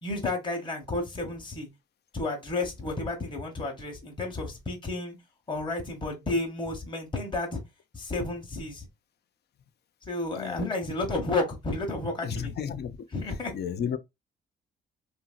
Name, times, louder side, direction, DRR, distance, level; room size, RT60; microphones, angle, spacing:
voice 1, 0.0-1.7 2.1-5.1 5.5-7.6 7.9-8.9 10.1-12.5 13.1-13.5, left 2 dB, 25° left, 1.0 m, -31 dB
voice 2, 10.4-10.7 12.2-13.0 13.5-14.0, left 8 dB, 55° left, 0.5 m, -32 dB
2.9 x 2.6 x 2.4 m
cardioid pair, 90°, 20 cm